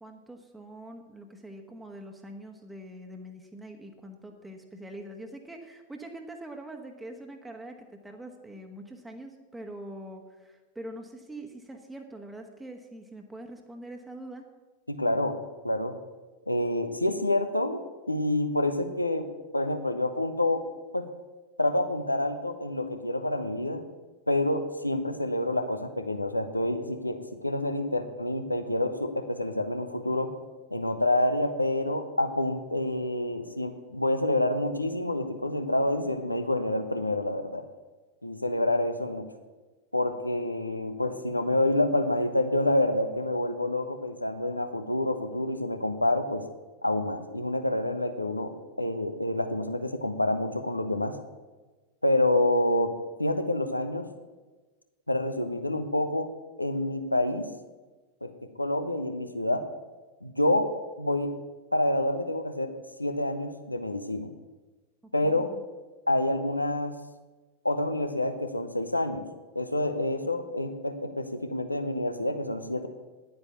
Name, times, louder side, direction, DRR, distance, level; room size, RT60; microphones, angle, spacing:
voice 1, 0.0-14.4 65.0-65.6, right 1 dB, 10° right, 3 dB, 1.3 m, -44 dB
voice 2, 14.9-15.4 15.6-16.0 16.5-17.8 18.1-19.3 19.5-20.7 20.9-21.1 21.6-23.8 24.3-30.3 30.7-37.6 38.2-39.3 39.9-46.4 46.8-51.2 52.0-52.9 53.2-54.1 55.1-56.3 56.6-57.5 58.2-58.3 58.6-59.6 60.2-60.7 61.0-61.3 61.7-62.7 63.0-64.3 65.1-65.5 66.1-67.0 67.6-69.2 69.5-72.9, left 1 dB, 85° left, 8 dB, 1.0 m, -27 dB
10.5 x 9.5 x 6.9 m, 1.2 s
figure-of-eight pair, 90°, 0 cm